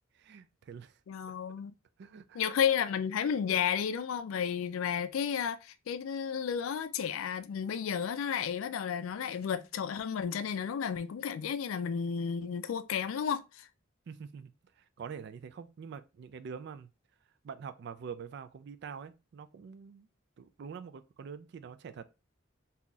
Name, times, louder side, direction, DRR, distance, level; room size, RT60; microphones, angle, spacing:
voice 1, 0.1-1.0 2.0-2.4 14.1-16.9 17.4-20.1 20.4-22.0, right 6 dB, 55° right, 0.3 m, -45 dB
voice 2, 1.1-1.8 2.3-13.7, left 7 dB, 90° left, 0.3 m, -32 dB
3.8 x 2.8 x 2.3 m
head